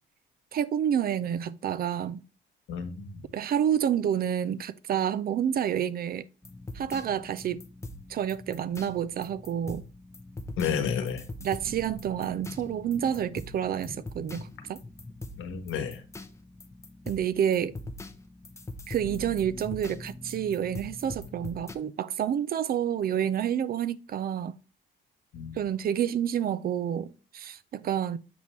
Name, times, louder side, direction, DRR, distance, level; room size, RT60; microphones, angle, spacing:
voice 1, 0.5-2.2 3.3-6.2 6.7-7.6 8.1-9.8 11.4-14.8 17.1-17.7 18.9-24.5 25.5-28.2, right 9 dB, 50° right, 0.4 m, -29 dB
voice 2, 2.7-3.2 10.6-11.2 15.4-16.0 25.3-25.6, left 7 dB, 80° left, 1.1 m, -31 dB
sound 1, 6.4-21.8, left 2 dB, 15° left, 0.6 m, -43 dB
7.1 x 4.4 x 3.0 m
cardioid pair, 90°, 20 cm